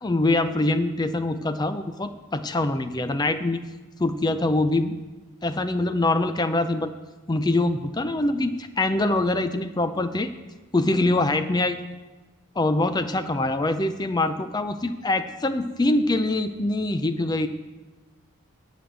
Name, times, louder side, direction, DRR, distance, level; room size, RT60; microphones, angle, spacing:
voice 1, 0.0-3.7 4.0-5.0 5.4-6.9 7.3-10.3 10.7-11.8 12.6-17.5, left 2 dB, 20° left, 10 dB, 0.4 m, -24 dB
10.5 x 6.3 x 8.2 m, 1.2 s
head